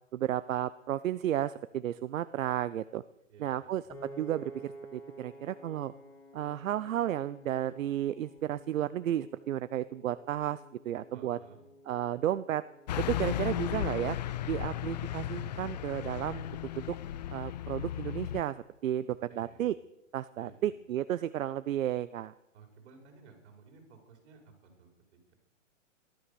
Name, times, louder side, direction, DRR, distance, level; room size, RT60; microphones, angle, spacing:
voice 1, 0.1-3.0 3.4-3.8 4.2-5.9 6.3-10.6 10.8-11.4 11.9-12.6 13.0-14.2 14.4-16.4 16.8-17.0 17.3-18.6 18.8-19.8 20.1-22.3, right 11 dB, 80° right, 15 dB, 0.7 m, -33 dB
voice 2, 3.3-3.9 11.1-11.6 18.9-19.7 20.4-20.7 22.5-24.9, right 5 dB, 55° right, 4 dB, 5.3 m, -56 dB
Piano, 3.9-16.1, right 1 dB, 5° left, 2.2 m, -53 dB
Car passing by / Truck, 12.9-18.4, left 11 dB, 35° left, 0.5 m, -35 dB
15.5 x 13.0 x 6.9 m, 0.91 s
hypercardioid pair, 155°, 39 cm